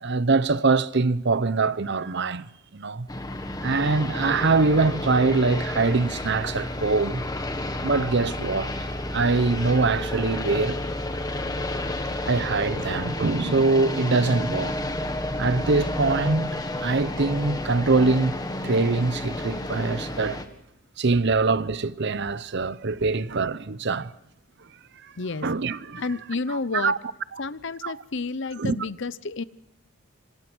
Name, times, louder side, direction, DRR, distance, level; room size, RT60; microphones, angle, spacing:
voice 1, 0.0-3.1 3.6-7.2 7.8-8.7 9.1-10.9 12.2-14.8 15.4-18.4 18.6-20.4 21.0-24.1 25.0-25.1 25.4-26.0 26.7-27.0 27.3-27.4 27.8-27.9 28.6-28.8, right 3 dB, 55° right, 0.8 m, -23 dB
sound 1, 3.1-20.5, left 1 dB, 20° left, 1.8 m, -31 dB
voice 2, 25.2-25.5 26.0-26.9 27.4-29.4, left 3 dB, 60° left, 0.9 m, -30 dB
26.5 x 25.0 x 6.2 m
head